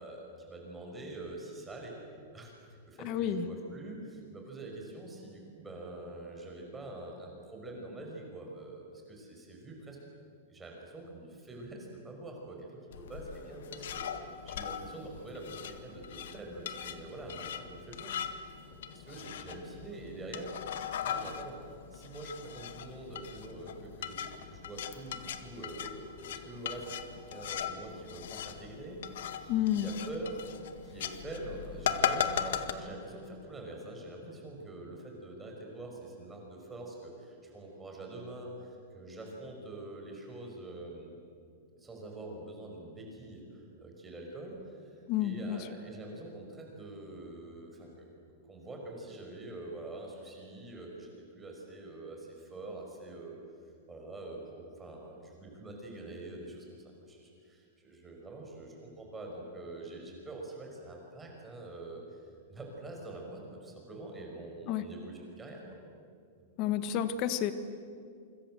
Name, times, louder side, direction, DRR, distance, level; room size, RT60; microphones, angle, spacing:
voice 1, 0.0-1.9 2.3-2.5 2.9-10.0 10.5-30.4 30.8-41.1 41.8-48.1 48.5-53.4 53.9-62.2 62.5-65.6, right 2 dB, 10° right, 0 dB, 5.7 m, -45 dB
voice 2, 3.0-3.5 29.5-29.9 45.1-45.6 64.7-64.8 66.6-67.5, left 10 dB, 35° left, 11 dB, 1.6 m, -30 dB
sound 1, 12.9-32.7, left 8 dB, 70° left, 1.8 m, -39 dB
28.0 x 25.5 x 7.8 m, 2.3 s
supercardioid pair, 165°, 0 cm